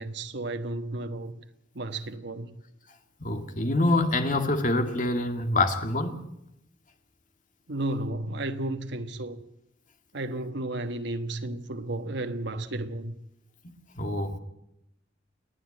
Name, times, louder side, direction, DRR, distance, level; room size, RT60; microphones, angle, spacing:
voice 1, 0.0-1.4 1.7-2.6 7.7-9.4 10.1-13.1, right 2 dB, 65° right, 1.3 m, -33 dB
voice 2, 3.2-6.2 14.0-14.4, left 2 dB, 45° left, 2.2 m, -25 dB
29.0 x 9.9 x 8.9 m
head